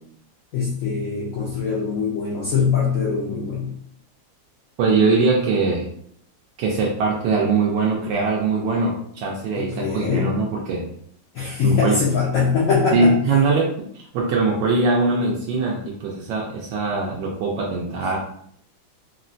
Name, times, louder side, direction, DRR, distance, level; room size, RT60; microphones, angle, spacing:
voice 1, 0.5-3.7 9.5-10.3 11.3-13.1, left 5 dB, 70° left, -4 dB, 0.8 m, -22 dB
voice 2, 4.8-5.8 6.6-10.9 11.6-12.0 12.9-18.2, right 3 dB, 80° right, -2 dB, 1.2 m, -21 dB
3.7 x 2.1 x 2.5 m, 0.67 s
omnidirectional pair, 2.0 m